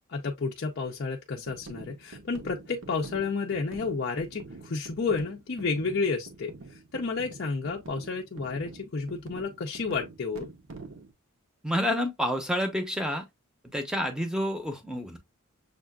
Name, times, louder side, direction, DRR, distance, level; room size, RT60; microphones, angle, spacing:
voice 1, 0.1-6.5 6.9-10.5, left 4 dB, 50° left, 0.5 m, -31 dB
sound 1, 1.5-11.1, right 3 dB, 65° right, 0.8 m, -46 dB
voice 2, 11.6-13.3 13.6-15.2, equal, 5° right, 0.7 m, -29 dB
6.5 x 2.4 x 2.2 m
head